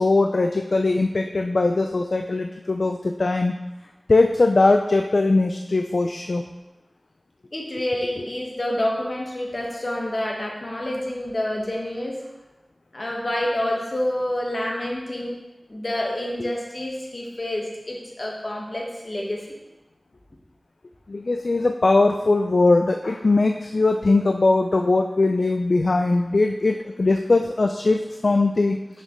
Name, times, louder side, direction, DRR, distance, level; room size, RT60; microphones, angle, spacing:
voice 1, 0.0-3.5 4.1-6.4 21.1-28.8, left 3 dB, 85° left, 4 dB, 0.3 m, -20 dB
voice 2, 7.5-12.2 12.9-15.4 15.7-19.6, left 1 dB, 60° left, -2 dB, 1.4 m, -28 dB
6.5 x 6.5 x 3.1 m, 1.0 s
wide cardioid pair, 50°, 0 cm